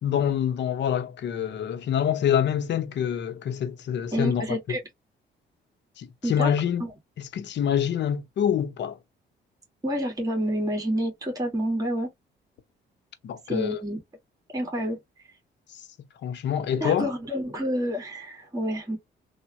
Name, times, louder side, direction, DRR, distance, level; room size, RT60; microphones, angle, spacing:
voice 1, 0.0-4.4 6.0-6.8 7.2-9.0 13.2-13.7 16.2-17.1, left 9 dB, 65° left, 0.7 m, -26 dB
voice 2, 4.1-4.8 6.2-6.5 6.8-6.9 9.8-12.1 13.5-14.0 14.5-15.0 16.8-19.0, equal, 20° right, 1.6 m, -28 dB
3.5 x 2.1 x 2.9 m
cardioid pair, 90°, 20 cm